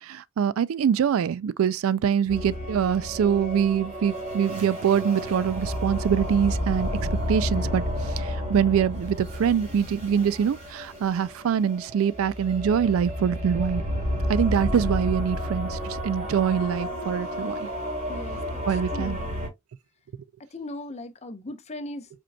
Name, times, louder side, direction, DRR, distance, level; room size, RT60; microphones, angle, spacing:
voice 1, 0.0-6.9 7.3-13.8 14.3-17.7 18.7-19.2, right 8 dB, 70° right, 0.3 m, -24 dB
sound 1, 2.3-19.5, equal, 35° right, 2.4 m, -31 dB
voice 2, 18.1-18.6 18.9-19.3 20.5-22.1, left 1 dB, 30° left, 0.6 m, -38 dB
5.0 x 4.4 x 2.2 m
head